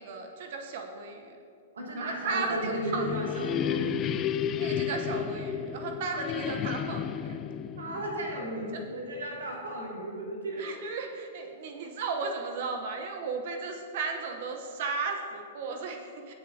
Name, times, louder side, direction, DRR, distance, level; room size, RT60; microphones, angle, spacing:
voice 1, 0.0-1.4 2.0-3.1 4.5-7.4 8.7-8.8 10.6-16.3, right 4 dB, 60° right, 4 dB, 1.0 m, -35 dB
voice 2, 1.7-4.3 7.8-10.7, right 1 dB, 85° right, -2 dB, 2.5 m, -34 dB
sound 1, 2.5-9.2, left 9 dB, 30° left, 0.3 m, -33 dB
17.0 x 6.6 x 2.9 m, 2.5 s
hypercardioid pair, 120°, 0 cm